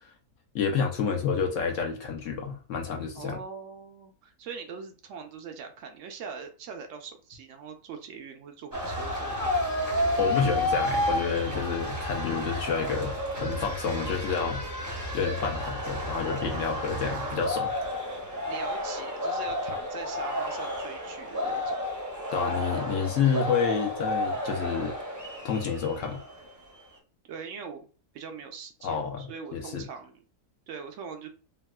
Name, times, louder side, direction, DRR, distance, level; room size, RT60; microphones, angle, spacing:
voice 1, 0.5-3.4 10.2-14.6 15.1-17.7 22.3-25.0 25.4-26.2 28.8-29.8, left 6 dB, 65° left, 0.9 m, -29 dB
voice 2, 3.2-9.7 17.1-17.5 18.5-21.9 27.2-27.9 28.1-30.2 30.7-31.3, right 5 dB, 70° right, 0.8 m, -42 dB
sound 1, 8.7-26.5, left 1 dB, 20° right, 0.5 m, -31 dB
3.5 x 2.3 x 2.2 m
omnidirectional pair, 1.7 m